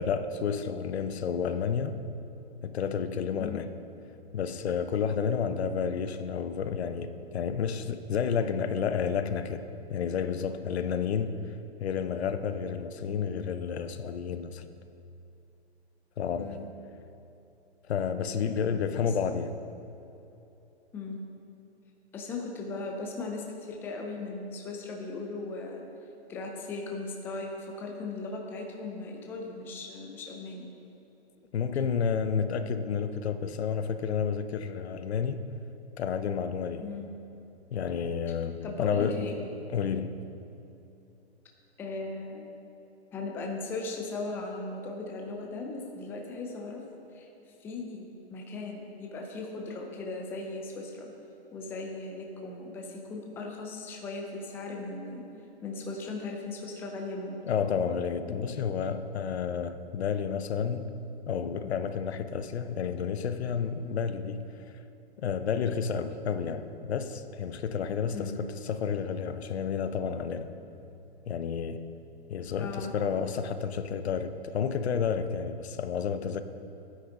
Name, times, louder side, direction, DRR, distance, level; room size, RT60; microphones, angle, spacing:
voice 1, 0.0-2.0 2.6-3.7 4.3-9.6 9.9-14.6 16.2-16.6 17.9-19.6 31.5-35.4 36.0-36.9 37.7-39.3 39.7-40.3 57.4-61.0 61.3-64.5 65.2-70.5 71.3-71.9 72.3-76.4, left 6 dB, 70° left, 10 dB, 0.8 m, -30 dB
voice 2, 22.1-25.8 26.3-30.7 36.8-37.1 38.6-39.3 41.8-42.5 43.1-46.8 47.1-47.3 47.6-51.1 51.5-55.3 55.6-57.4 58.3-58.7 68.1-68.4 72.6-72.9, left 3 dB, 5° left, 1 dB, 0.5 m, -38 dB
13.0 x 9.5 x 3.8 m, 2.9 s
hypercardioid pair, 145°, 33 cm